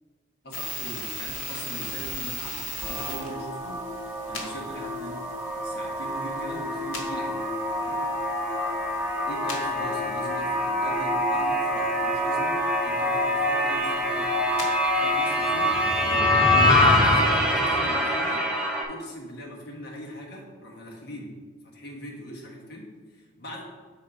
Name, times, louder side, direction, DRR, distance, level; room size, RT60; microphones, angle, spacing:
voice 1, 0.4-5.2 5.6-8.0 9.3-14.5 14.9-15.8 16.0-16.4 16.8-18.5 18.9-21.4 21.6-23.6, equal, 50° left, -2 dB, 1.3 m, -40 dB
sound 1, 0.5-16.2, left 1 dB, 80° left, 1.5 m, -40 dB
sound 2, 2.8-18.8, left 1 dB, 5° right, 0.7 m, -25 dB
6.5 x 3.9 x 4.9 m, 1.4 s
head